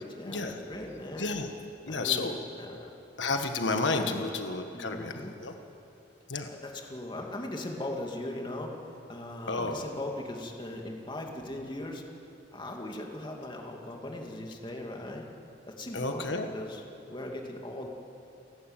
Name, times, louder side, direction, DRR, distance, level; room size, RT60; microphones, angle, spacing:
voice 1, 0.0-1.3 1.8-2.3 2.6-2.9 4.0-4.2 4.7-5.3 6.4-8.8 9.1-12.0 12.5-15.3 15.7-17.9, left 1 dB, 25° left, 1 dB, 2.4 m, -39 dB
voice 2, 1.9-2.4 3.2-5.5 6.3-6.5 9.5-9.8 15.9-16.5, left 3 dB, 85° left, 5 dB, 1.5 m, -31 dB
29.5 x 12.0 x 9.0 m, 2.8 s
head